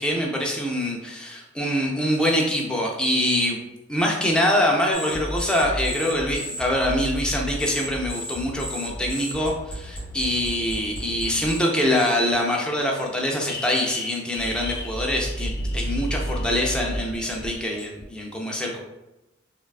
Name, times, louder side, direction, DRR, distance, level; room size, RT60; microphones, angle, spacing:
voice 1, 0.0-3.6 3.9-18.8, left 1 dB, 5° left, -1 dB, 0.4 m, -24 dB
sound 1, 4.9-11.6 12.0-12.3 13.0-13.1 13.5-18.1, equal, 55° left, 0.7 m, -32 dB
3.2 x 2.2 x 2.3 m, 0.98 s
head